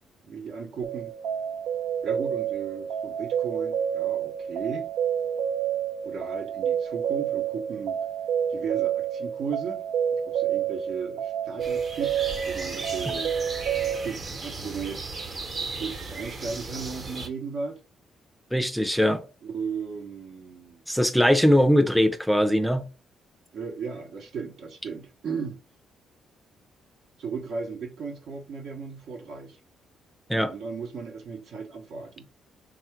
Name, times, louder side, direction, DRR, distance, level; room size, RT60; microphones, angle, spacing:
voice 1, 0.2-1.1 2.0-4.9 6.0-8.0 8.5-9.8 10.1-13.3 14.0-15.1 15.8-17.8 19.4-20.8 23.5-25.6 27.2-29.6 30.3-32.2, right 5 dB, 70° right, 0.9 m, -36 dB
sound 1, 0.8-14.1, right 9 dB, 90° right, 0.4 m, -29 dB
sound 2, 11.6-17.3, right 3 dB, 45° right, 1.0 m, -36 dB
voice 2, 18.5-19.2 20.9-22.9 30.3-30.5, equal, ahead, 0.4 m, -21 dB
3.6 x 2.3 x 4.4 m
cardioid pair, 90°, 0 cm